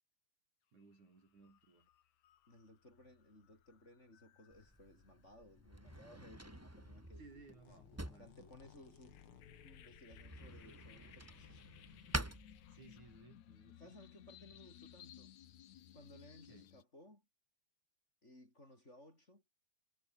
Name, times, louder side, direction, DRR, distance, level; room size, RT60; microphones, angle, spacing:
voice 1, 0.7-1.9 7.2-8.5 12.7-13.9 16.5-16.7, right 3 dB, 70° right, 8.2 m, -61 dB
sound 1, 0.8-1.0 1.4-16.8, left 11 dB, 70° left, 2.6 m, -61 dB
voice 2, 2.5-7.2 8.2-9.2 9.6-11.6 13.8-15.3 15.9-17.3 18.2-19.4, left 1 dB, 20° left, 6.0 m, -60 dB
Drawer open or close, 4.5-13.2, right 1 dB, 5° right, 1.2 m, -48 dB
sound 2, 5.9-6.7 7.0-10.4 11.0-11.1, left 8 dB, 50° left, 2.4 m, -64 dB
omnidirectional pair, 3.5 m